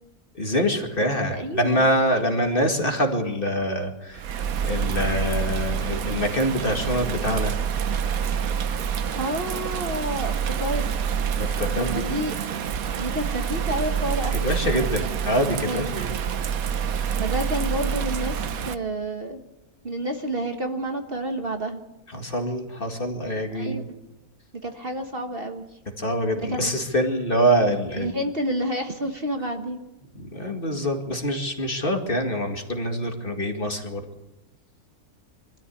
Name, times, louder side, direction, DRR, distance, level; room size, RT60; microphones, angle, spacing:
voice 1, 0.3-4.2 4.6-7.5 11.4-12.0 14.3-16.1 22.1-23.7 26.0-28.2 30.2-34.0, equal, 35° left, 4 dB, 2.3 m, -25 dB
voice 2, 1.0-1.9 8.7-10.9 11.8-12.3 13.0-15.1 15.7-15.9 17.2-19.4 19.8-21.8 23.5-23.9 24.6-25.7 26.4-26.7 28.0-29.8, right 1 dB, 40° right, 5 dB, 1.6 m, -30 dB
Bird vocalization bird call bird song / Rain, 4.1-18.7, right 7 dB, 70° right, 1.3 m, -27 dB
24.0 x 13.5 x 8.5 m, 1.0 s
omnidirectional pair, 1.6 m